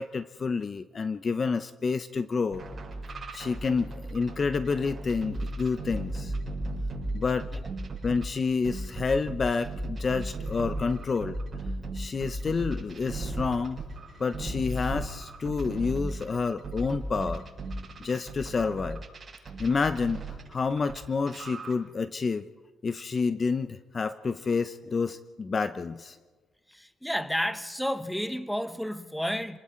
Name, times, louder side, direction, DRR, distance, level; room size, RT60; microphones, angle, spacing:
voice 1, 0.0-2.6 3.3-6.3 7.1-7.5 8.0-11.4 11.9-13.8 14.2-17.4 18.0-19.0 19.6-22.4 22.8-26.2, left 4 dB, 40° left, 12 dB, 0.7 m, -29 dB
sound 1, 2.5-8.2 8.6-21.0 21.3-21.7, right 2 dB, 35° right, 6.8 m, -36 dB
voice 2, 26.7-29.6, equal, ahead, 11 dB, 1.2 m, -31 dB
30.0 x 20.0 x 4.5 m, 1.4 s
cardioid pair, 90°, 0 cm